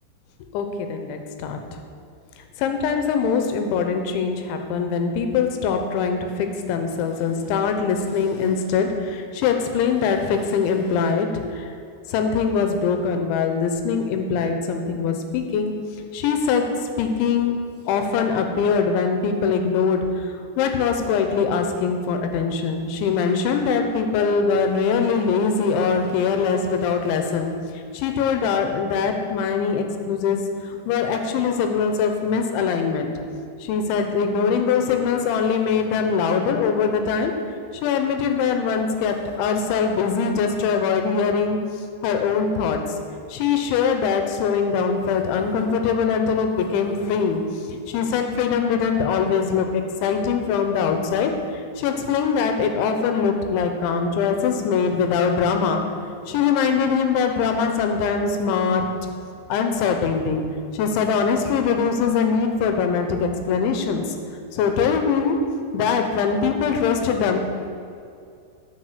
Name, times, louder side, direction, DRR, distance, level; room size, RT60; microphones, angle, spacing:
voice 1, 0.5-1.6 2.6-11.3 11.6-11.7 12.1-15.7 16.1-16.7 17.0-17.5 17.9-20.0 20.6-27.5 27.9-30.4 30.9-33.1 33.6-37.3 37.8-41.6 42.0-42.8 43.3-47.4 47.7-51.3 51.8-55.8 56.3-58.9 59.5-60.4 60.7-64.0 64.5-65.4 65.7-67.4, left 6 dB, 85° left, 5 dB, 3.0 m, -22 dB
8.3 x 6.2 x 6.6 m, 2.4 s
omnidirectional pair, 5.4 m